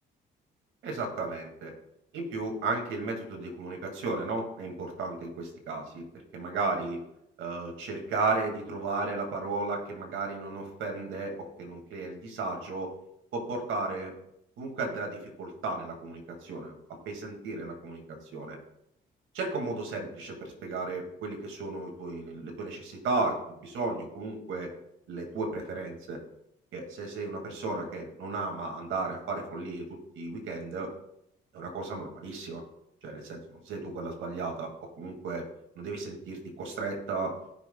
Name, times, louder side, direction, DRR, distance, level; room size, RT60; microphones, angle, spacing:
voice 1, 0.8-1.7 2.1-6.0 6.3-7.0 7.4-12.9 13.3-14.1 14.6-16.8 17.0-18.6 19.3-24.7 25.1-26.2 26.7-30.9 31.5-32.6 33.0-34.7 35.0-35.4 35.8-37.3, right 3 dB, 80° right, 2 dB, 2.2 m, -34 dB
18.0 x 6.1 x 2.3 m, 0.81 s
cardioid pair, 90°, 20 cm